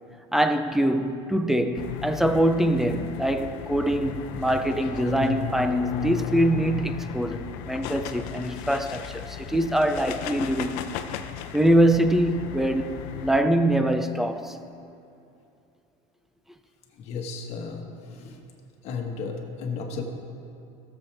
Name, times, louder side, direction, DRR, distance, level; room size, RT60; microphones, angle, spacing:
voice 1, 0.3-10.9 11.5-12.9 13.2-14.6, right 1 dB, 5° right, 0.4 m, -23 dB
sound 1, 1.8-13.4, left 9 dB, 75° left, 0.6 m, -35 dB
voice 2, 17.0-18.4 18.8-20.0, left 5 dB, 50° left, 1.4 m, -34 dB
17.5 x 7.3 x 3.4 m
cardioid pair, 145°, 14 cm